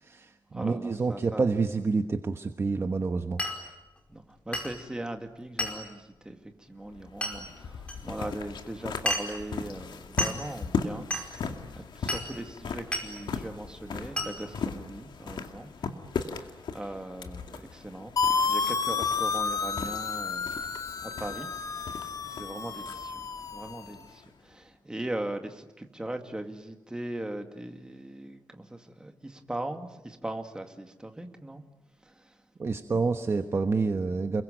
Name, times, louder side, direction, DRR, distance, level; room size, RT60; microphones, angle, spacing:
voice 1, 0.0-3.4 32.6-34.4, right 4 dB, 35° right, 7 dB, 1.1 m, -28 dB
voice 2, 0.5-1.5 4.1-15.9 16.2-21.5 21.9-22.0 22.2-23.2 23.5-31.6 32.0-32.4, right 1 dB, 10° right, 5 dB, 2.3 m, -39 dB
Glass, 3.4-3.6 4.5-4.8 5.6-5.8 7.2-7.4 7.9-8.0 9.1-9.4 10.2-10.4 11.1-11.3 12.1-12.3 12.9-13.1 14.2-14.3, left 1 dB, 15° left, 5.0 m, -31 dB
sound 1, 6.8-24.5, left 5 dB, 80° left, 2.3 m, -38 dB
sound 2, 18.2-23.9, left 5 dB, 50° left, 1.1 m, -31 dB
29.5 x 22.5 x 9.0 m, 1.0 s
wide cardioid pair, 165°, 8 cm